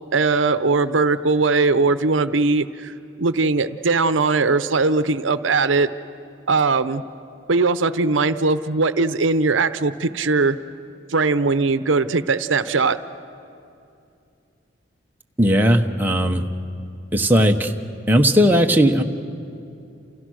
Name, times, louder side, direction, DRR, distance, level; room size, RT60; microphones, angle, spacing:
voice 1, 0.1-5.9 6.5-7.0 7.5-10.6 11.1-13.0, right 3 dB, 80° right, 12 dB, 0.8 m, -20 dB
voice 2, 15.4-16.4 17.1-17.7 18.1-19.0, equal, 10° right, 2 dB, 1.1 m, -17 dB
29.0 x 29.0 x 6.4 m, 2.6 s
head